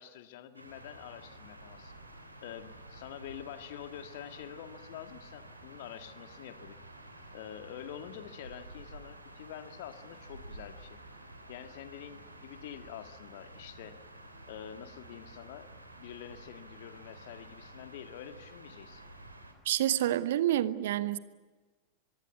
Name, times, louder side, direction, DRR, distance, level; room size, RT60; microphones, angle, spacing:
voice 1, 0.0-2.0 2.4-6.8 7.3-11.0 11.5-14.0 14.5-15.7 16.0-19.1, left 10 dB, 50° left, 1.8 m, -47 dB
sound 1, 0.5-19.5, right 1 dB, 85° right, 3.6 m, -51 dB
voice 2, 19.6-21.2, right 12 dB, 55° right, 1.0 m, -28 dB
24.0 x 22.5 x 9.4 m
figure-of-eight pair, 90°, 0 cm